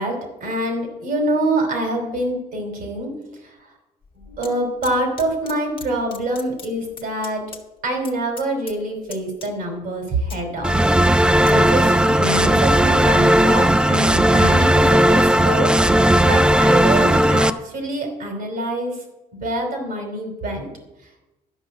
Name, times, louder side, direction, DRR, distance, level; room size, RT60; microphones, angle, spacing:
voice 1, 0.0-3.1 3.4-3.7 4.1-7.4 7.8-11.2 11.4-15.7 16.2-19.0 19.4-20.7, right 1 dB, 55° right, 3 dB, 3.1 m, -25 dB
sound 1, 4.0-4.5 4.8-5.9 6.1-7.6 7.9-8.1 8.4-8.8 9.1-9.8 10.1-11.5 12.0-12.2, left 5 dB, 30° left, 1.5 m, -39 dB
sound 2, 10.6-17.5, right 1 dB, 5° right, 0.4 m, -16 dB
12.0 x 5.4 x 7.7 m, 1.0 s
cardioid pair, 110°, 17 cm